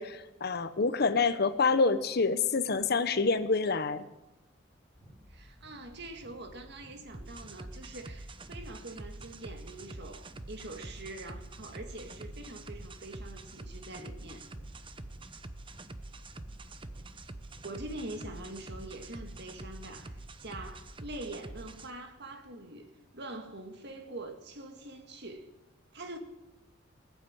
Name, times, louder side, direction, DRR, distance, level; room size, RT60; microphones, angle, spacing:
voice 1, 0.0-4.0, left 4 dB, 55° left, 12 dB, 0.9 m, -27 dB
sound 1, 4.9-20.9, equal, ahead, 4.9 m, -55 dB
voice 2, 5.3-14.5 17.6-22.9 23.1-25.5 25.9-26.2, right 2 dB, 60° right, 6 dB, 2.0 m, -44 dB
sound 2, 7.1-21.9, right 2 dB, 25° right, 0.7 m, -46 dB
19.5 x 8.2 x 8.8 m, 1.0 s
head